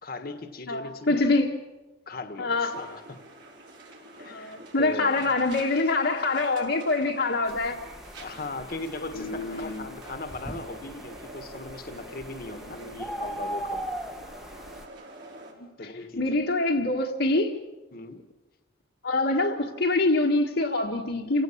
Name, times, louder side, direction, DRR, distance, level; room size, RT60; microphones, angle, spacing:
voice 1, 0.0-1.2 2.1-3.2 4.2-5.3 8.2-13.9 15.8-16.4 17.9-18.2, left 2 dB, 50° left, 1.5 m, -38 dB
voice 2, 0.7-1.5 2.4-2.8 4.2-7.8 9.1-9.8 12.8-12.9 15.6-15.7 16.2-17.5 19.0-21.4, left 2 dB, 75° left, 1.7 m, -25 dB
sound 1, 2.5-15.5, right 2 dB, 65° right, 4.7 m, -47 dB
sound 2, 7.4-14.8, right 1 dB, ahead, 1.0 m, -40 dB
28.0 x 17.0 x 7.3 m
head